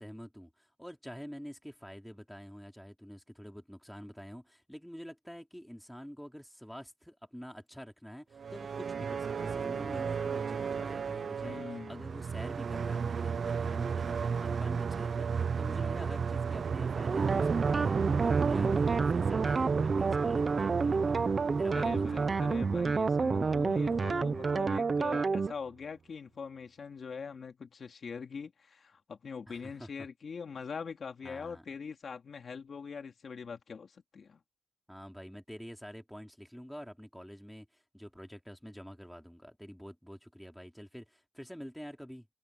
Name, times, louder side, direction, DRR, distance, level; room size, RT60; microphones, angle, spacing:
voice 1, 0.0-21.1 21.6-22.6 29.5-29.9 31.2-31.6 34.9-42.4, equal, ahead, 3.0 m, -47 dB
sound 1, 8.3-25.2, right 6 dB, 80° right, 0.5 m, -34 dB
voice 2, 11.4-12.0 21.7-34.4, left 5 dB, 80° left, 3.1 m, -43 dB
sound 2, 17.1-25.5, right 4 dB, 50° right, 0.8 m, -29 dB
wide cardioid pair, 135°, 0 cm